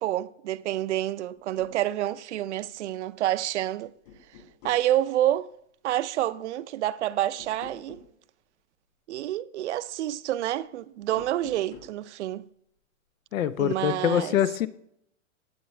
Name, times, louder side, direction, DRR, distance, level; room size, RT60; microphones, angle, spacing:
voice 1, 0.0-3.9 4.6-5.5 5.8-8.0 9.1-12.4 13.6-14.4, right 13 dB, 60° right, 0.6 m, -28 dB
sound 1, 1.4-1.8 3.3-3.7 4.1-4.9 7.4-8.1 11.0-12.0, left 5 dB, 50° left, 4.9 m, -48 dB
voice 2, 13.3-14.7, left 10 dB, 75° left, 0.9 m, -24 dB
16.5 x 8.8 x 3.3 m
hypercardioid pair, 155°, 40 cm